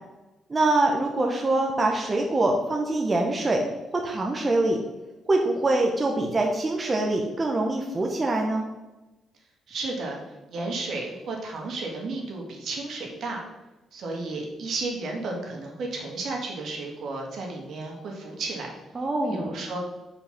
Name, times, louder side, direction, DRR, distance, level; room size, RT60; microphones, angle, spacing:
voice 1, 0.5-3.6 3.9-4.8 5.3-8.6 18.9-19.5, right 2 dB, 25° right, 1 dB, 1.0 m, -24 dB
voice 2, 9.7-10.2 10.5-13.4 13.9-18.7 19.3-19.8, right 3 dB, 65° right, 0 dB, 1.9 m, -33 dB
5.4 x 4.8 x 5.9 m, 1.0 s
cardioid pair, 90°, 0 cm